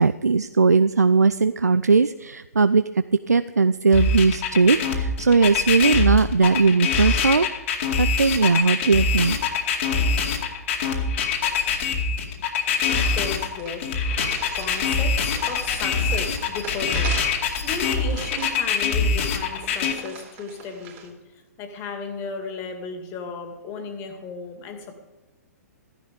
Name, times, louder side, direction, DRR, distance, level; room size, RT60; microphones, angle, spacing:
voice 1, 0.0-7.5 8.0-9.4, right 4 dB, 85° right, 13 dB, 0.4 m, -19 dB
sound 1, 3.9-19.9, left 5 dB, 50° left, 2.2 m, -23 dB
voice 2, 12.8-14.0 14.5-21.2 21.6-24.9, left 4 dB, 30° left, 6 dB, 2.1 m, -35 dB
sound 2, 13.6-21.1, right 7 dB, 35° right, 2.8 m, -41 dB
14.5 x 10.5 x 5.2 m, 1.2 s
figure-of-eight pair, 115°, 9 cm